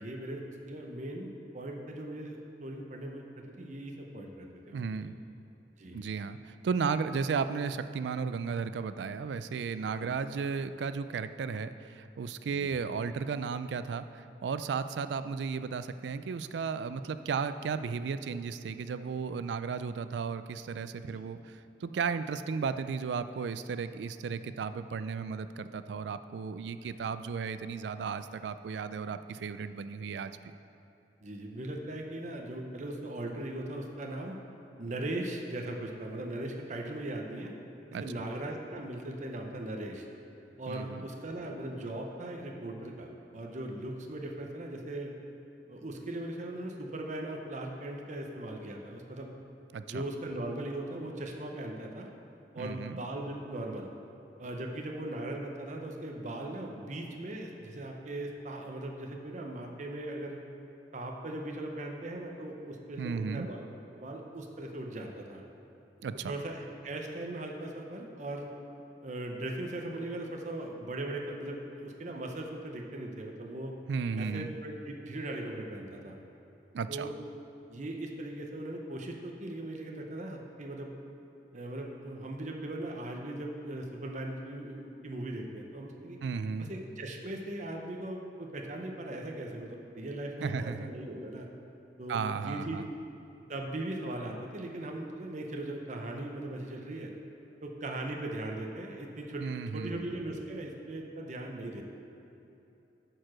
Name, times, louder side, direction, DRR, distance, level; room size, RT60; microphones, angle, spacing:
voice 1, 0.0-5.1 5.8-6.1 9.9-10.1 12.5-12.8 21.0-21.2 31.2-34.4 34.8-37.5 38.0-40.1 40.6-45.1 45.7-49.3 49.9-52.1 52.5-53.9 54.4-60.4 60.9-63.6 63.9-65.4 66.3-68.5 69.0-73.7 74.2-76.2 76.9-77.2 77.7-80.9 81.5-86.2 86.6-91.5 92.0-92.9 93.5-97.1 97.6-101.8, right 1 dB, 45° right, 1 dB, 0.8 m, -39 dB
voice 2, 4.7-5.2 5.9-30.4 37.9-38.0 40.7-41.1 49.7-50.0 52.6-53.0 63.0-63.5 66.0-66.3 73.9-74.5 76.7-77.1 86.2-86.7 90.4-90.9 92.1-92.9 99.4-100.1, right 5 dB, 80° right, 12 dB, 0.3 m, -34 dB
8.9 x 4.7 x 6.1 m, 3.0 s
head